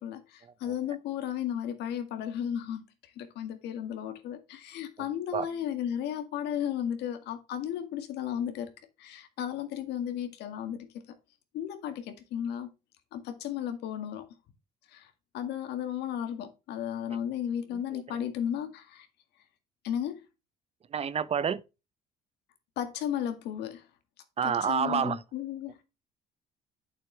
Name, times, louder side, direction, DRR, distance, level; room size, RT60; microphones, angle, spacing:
voice 1, 0.0-2.9 3.2-8.7 9.0-10.9 11.5-12.7 13.1-14.3 14.9-19.1 19.8-20.2 22.8-23.8 24.4-25.8, left 9 dB, 80° left, 1.9 m, -34 dB
voice 2, 20.9-21.6 24.4-25.2, right 7 dB, 35° right, 0.7 m, -28 dB
8.8 x 6.9 x 3.3 m
cardioid pair, 110°, 17 cm